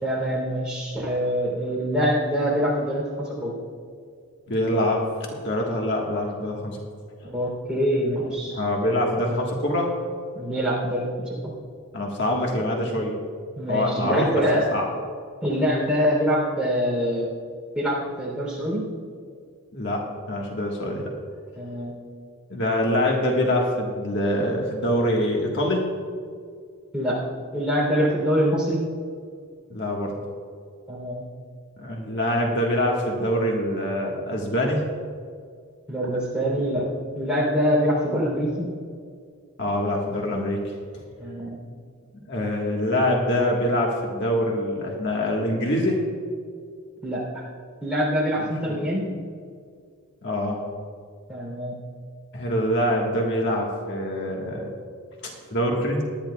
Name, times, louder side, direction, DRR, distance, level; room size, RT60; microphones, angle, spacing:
voice 1, 0.0-3.6 7.2-8.6 10.3-11.4 13.6-14.7 15.4-17.3 17.8-18.9 21.5-22.0 26.9-27.2 27.5-28.9 30.9-31.3 35.9-36.9 37.2-38.7 41.2-41.6 47.0-47.4 47.8-49.1 51.3-51.8, equal, 5° right, -4 dB, 3.4 m, -24 dB
voice 2, 4.5-6.8 8.5-9.9 11.9-13.2 13.7-14.4 14.7-14.8 19.7-20.0 20.3-21.1 22.5-25.8 29.7-30.1 31.8-34.8 39.6-40.7 42.3-46.0 48.7-48.8 50.2-50.6 52.3-54.7 55.2-56.0, left 1 dB, 55° left, -1 dB, 1.6 m, -24 dB
19.0 x 11.5 x 2.4 m, 2.1 s
head